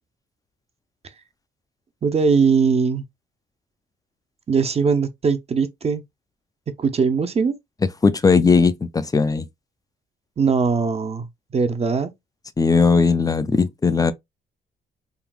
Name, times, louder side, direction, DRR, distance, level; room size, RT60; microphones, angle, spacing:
voice 1, 2.0-3.0 4.5-6.0 6.8-7.6 10.4-11.3 11.5-12.1, right 5 dB, 30° right, 0.6 m, -20 dB
voice 2, 8.0-9.5 12.6-14.1, left 4 dB, 20° left, 0.4 m, -18 dB
3.7 x 2.3 x 2.3 m
cardioid pair, 90°, 20 cm